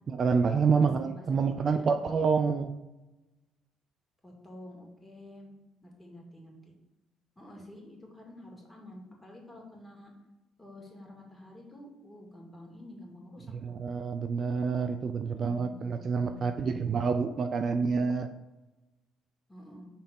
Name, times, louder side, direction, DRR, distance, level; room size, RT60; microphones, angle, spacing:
voice 1, 0.1-2.7 13.5-18.3, right 5 dB, 45° right, 7 dB, 0.5 m, -28 dB
voice 2, 0.6-1.3 1.6-1.9 4.2-5.5 5.8-6.7 7.4-10.1 10.6-13.8 15.3-17.0 19.5-19.9, left 1 dB, 15° left, -1 dB, 2.4 m, -49 dB
5.6 x 4.1 x 5.4 m, 1.0 s
hypercardioid pair, 50°, 0 cm